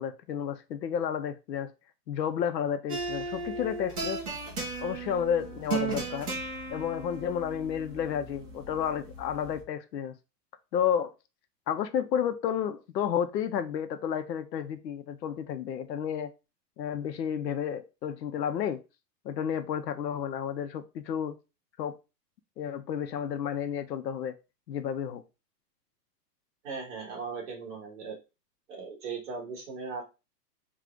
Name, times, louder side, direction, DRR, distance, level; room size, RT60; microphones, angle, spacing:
voice 1, 0.0-1.7 2.1-4.2 4.8-6.3 6.7-10.2 10.7-11.1 11.7-16.3 16.8-18.8 19.2-21.4 21.8-21.9 22.6-24.3 24.7-25.2, left 8 dB, 80° left, 0.8 m, -31 dB
sound 1, 2.9-9.6, right 3 dB, 20° right, 0.8 m, -36 dB
voice 2, 26.6-28.2 28.7-30.0, right 5 dB, 45° right, 1.9 m, -38 dB
4.8 x 2.4 x 3.7 m
hypercardioid pair, 180°, 49 cm